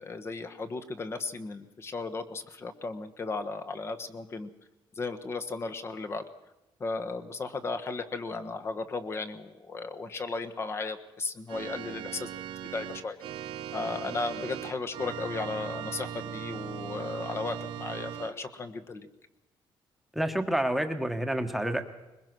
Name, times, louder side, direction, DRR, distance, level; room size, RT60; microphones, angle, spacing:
voice 1, 0.0-4.5 4.9-6.2 6.8-12.3 12.7-13.2 13.7-19.1, left 3 dB, 30° left, 8 dB, 1.3 m, -35 dB
Organ, 11.5-18.3, right 9 dB, 75° right, 1.2 m, -39 dB
voice 2, 20.1-21.8, right 1 dB, ahead, 6 dB, 1.3 m, -28 dB
22.0 x 20.5 x 6.1 m, 1.0 s
cardioid pair, 160°, 9 cm